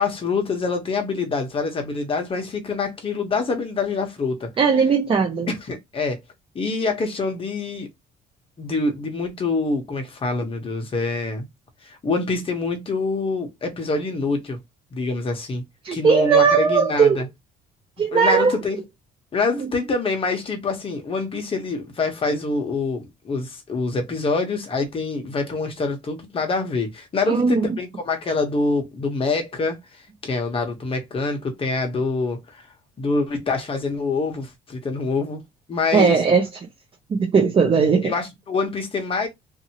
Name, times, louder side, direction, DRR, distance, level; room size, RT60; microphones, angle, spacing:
voice 1, 0.0-4.5 5.5-6.2 6.5-7.9 8.6-11.5 11.8-14.6 14.9-15.6 15.9-17.3 18.1-18.8 19.3-29.8 30.2-32.6 33.0-35.4 35.7-36.2 38.0-39.3, left 3 dB, 35° left, 1.0 m, -25 dB
voice 2, 4.6-5.5 15.8-17.2 18.0-18.6 19.6-19.7 27.3-27.8 35.9-36.5 37.1-38.1, right 5 dB, 30° right, 0.8 m, -18 dB
2.7 x 2.6 x 2.8 m
cardioid pair, 110°, 17 cm